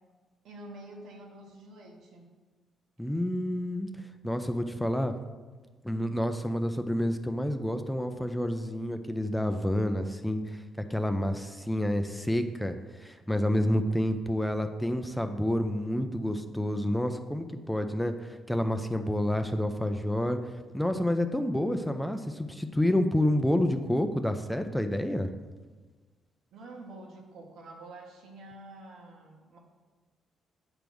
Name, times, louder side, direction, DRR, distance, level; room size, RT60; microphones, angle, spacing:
voice 1, 0.4-2.3 26.5-29.6, right 2 dB, 75° right, 1 dB, 1.4 m, -47 dB
voice 2, 3.0-3.9 4.2-5.1 5.8-10.6 10.9-25.3, left 1 dB, 5° left, 7 dB, 0.5 m, -29 dB
8.8 x 3.5 x 6.1 m, 1.3 s
cardioid pair, 90°, 0 cm